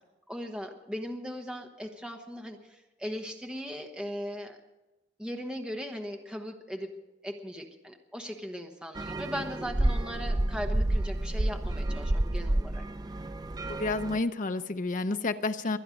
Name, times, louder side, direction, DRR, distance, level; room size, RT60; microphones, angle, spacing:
voice 1, 0.3-4.6 5.2-6.9 7.2-12.8, equal, 5° right, 4 dB, 1.2 m, -38 dB
sound 1, 8.9-14.2, right 1 dB, 20° right, 0.5 m, -30 dB
voice 2, 13.7-15.8, left 3 dB, 45° left, 9 dB, 0.7 m, -30 dB
23.5 x 9.9 x 5.2 m, 1.0 s
head